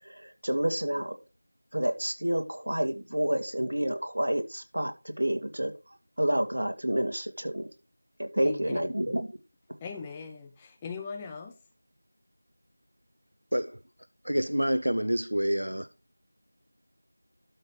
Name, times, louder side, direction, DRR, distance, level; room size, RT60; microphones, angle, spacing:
voice 1, 0.4-1.2 1.7-5.7 6.2-7.7 8.2-9.2, right 1 dB, 65° right, 2.1 m, -29 dB
voice 2, 8.4-9.1 9.8-11.6, left 5 dB, 10° left, 0.5 m, -40 dB
voice 3, 14.2-15.9, equal, 85° right, 0.6 m, -27 dB
12.0 x 4.6 x 4.9 m
figure-of-eight pair, 175°, 0 cm